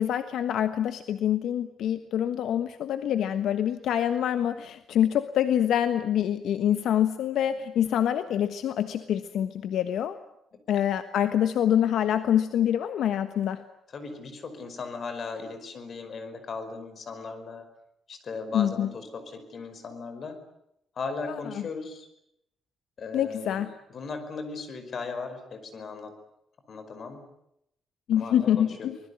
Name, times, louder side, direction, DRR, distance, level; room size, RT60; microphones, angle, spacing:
voice 1, 0.0-10.2 10.7-13.6 18.5-18.9 21.3-21.4 23.1-23.7 28.1-29.0, left 10 dB, 70° left, 10 dB, 1.3 m, -26 dB
voice 2, 13.9-17.6 18.1-20.4 20.9-22.1 23.0-26.2 26.7-27.3 28.2-29.0, left 4 dB, 40° left, 8 dB, 5.2 m, -37 dB
25.5 x 20.5 x 9.6 m, 0.79 s
cardioid pair, 165°, 0 cm